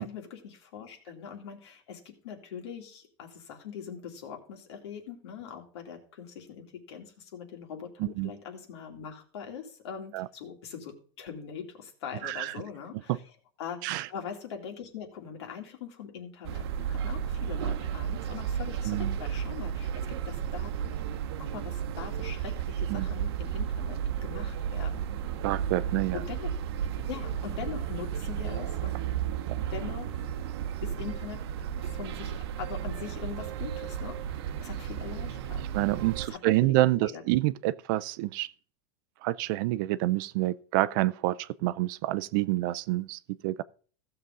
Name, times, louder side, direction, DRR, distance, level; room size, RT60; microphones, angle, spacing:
voice 1, 0.0-13.2 13.6-21.0 21.4-25.1 26.1-26.5 27.1-28.9 29.7-30.2 30.8-31.4 31.8-34.2 34.6-35.6 36.3-37.2, left 7 dB, 75° left, 2.7 m, -42 dB
voice 2, 12.2-12.5 13.1-13.2 13.8-14.1 18.9-19.1 22.9-23.1 25.4-26.2 29.5-29.7 35.7-38.5 39.2-43.6, right 17 dB, 50° right, 0.4 m, -28 dB
sound 1, 16.4-36.3, right 8 dB, 65° right, 0.9 m, -33 dB
15.5 x 6.8 x 3.8 m
supercardioid pair, 160°, 14 cm